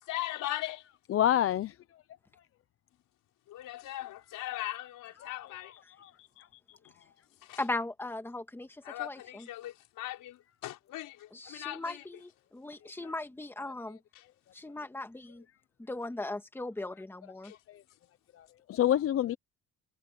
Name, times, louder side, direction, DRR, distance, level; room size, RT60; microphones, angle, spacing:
voice 1, 0.0-0.9 3.5-5.7 7.4-7.6 8.8-12.1 13.0-13.1 14.1-14.3 17.4-17.6, left 15 dB, 75° left, 5.1 m, -39 dB
voice 2, 1.1-1.7 5.2-5.3 6.0-6.1 6.4-6.5 18.7-19.4, left 11 dB, 45° left, 0.6 m, -26 dB
voice 3, 7.6-9.5 11.3-14.0 14.5-15.4 15.8-17.5, left 2 dB, 5° left, 1.9 m, -38 dB
cardioid pair, 145°, 32 cm